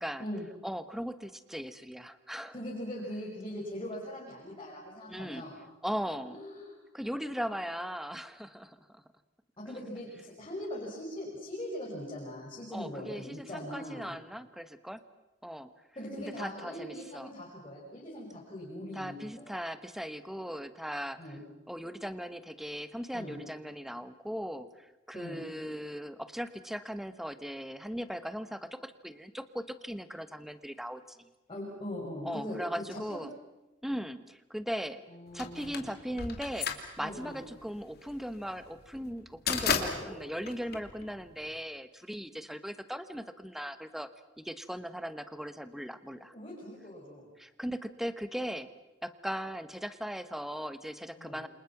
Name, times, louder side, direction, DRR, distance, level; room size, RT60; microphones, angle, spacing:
voice 1, 0.6-2.5 5.1-5.4 5.8-6.4 6.9-9.0 9.7-9.8 12.7-15.0 15.4-15.7 16.2-17.3 18.9-21.2 21.7-31.2 32.2-33.3 33.8-35.0 35.3-44.1 44.4-46.3 47.4-48.7 49.0-51.5, equal, ahead, 11 dB, 1.1 m, -38 dB
voice 2, 2.5-5.6 6.2-6.8 9.6-14.1 16.0-19.5 21.2-21.4 23.1-23.4 25.1-25.4 31.5-33.2 35.1-35.9 37.0-37.4 39.6-40.2 46.3-47.3 51.2-51.4, left 1 dB, 25° left, -5 dB, 6.2 m, -41 dB
sound 1, 35.4-41.5, left 6 dB, 55° left, 2.8 m, -34 dB
29.5 x 27.0 x 6.0 m, 1.0 s
head